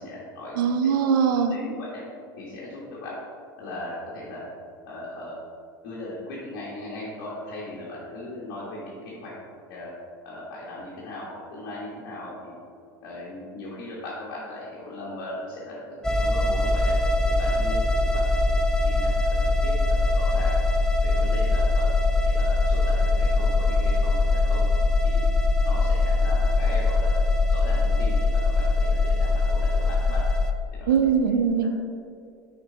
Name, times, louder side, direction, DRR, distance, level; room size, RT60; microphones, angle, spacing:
voice 1, 0.0-0.5 1.0-1.1 1.5-2.0 2.4-3.1 3.6-4.4 4.9-5.3 5.8-9.3 9.7-9.9 10.2-12.6 13.0-16.9 17.3-18.2 18.5-19.4 19.6-19.7 20.0-20.5 21.0-21.9 22.2-24.6 25.0-25.3 25.6-27.1 27.5-30.2 30.7-31.1 31.5-31.7, left 1 dB, 60° left, -6 dB, 1.4 m, -38 dB
voice 2, 0.6-1.6 30.9-31.7, right 7 dB, 70° right, 7 dB, 0.6 m, -21 dB
sound 1, 16.0-30.5, left 3 dB, 5° left, 0.5 m, -22 dB
6.3 x 4.7 x 3.8 m, 2.3 s
hypercardioid pair, 80°, 11 cm